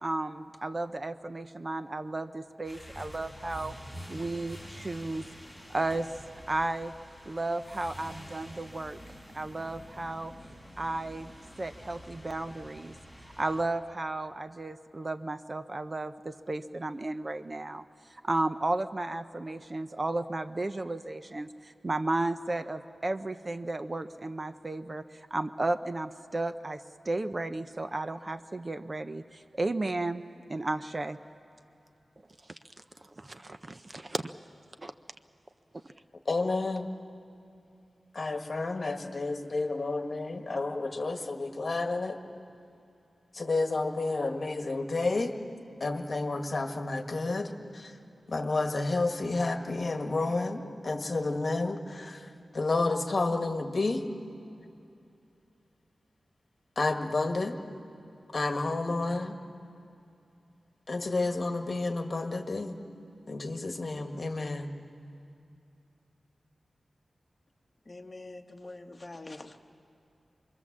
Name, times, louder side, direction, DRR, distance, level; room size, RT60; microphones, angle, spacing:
voice 1, 0.0-3.7 4.1-5.2 5.7-6.9 7.3-9.0 9.3-10.3 10.8-11.3 11.6-12.9 13.4-17.8 18.1-30.2 30.5-31.2 32.5-32.6 33.2-34.3 34.8-34.9, right 2 dB, 30° right, 10 dB, 0.6 m, -33 dB
sound 1, 2.6-13.6, equal, 10° right, 5.3 m, -48 dB
voice 2, 36.2-36.9 38.1-42.2 43.3-45.4 45.8-47.9 48.3-54.0 56.7-57.6 58.3-59.4 60.9-62.8 63.3-64.7, left 3 dB, 45° left, 5 dB, 1.5 m, -30 dB
voice 3, 67.8-69.6, left 2 dB, 25° left, 3 dB, 1.3 m, -45 dB
26.5 x 21.5 x 7.4 m, 2.7 s
wide cardioid pair, 125°, 0 cm